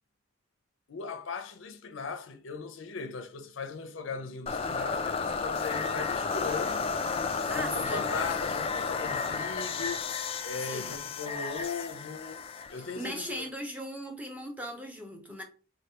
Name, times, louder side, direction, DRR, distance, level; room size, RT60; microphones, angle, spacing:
voice 1, 0.9-6.9 7.5-10.0 10.4-12.4 12.7-13.5, left 5 dB, 80° left, 0.6 m, -38 dB
sound 1, 4.5-13.5, left 5 dB, 30° left, 0.3 m, -32 dB
voice 2, 7.2-8.1 10.6-11.0 12.8-15.4, equal, 10° right, 0.8 m, -39 dB
4.0 x 3.2 x 2.8 m
head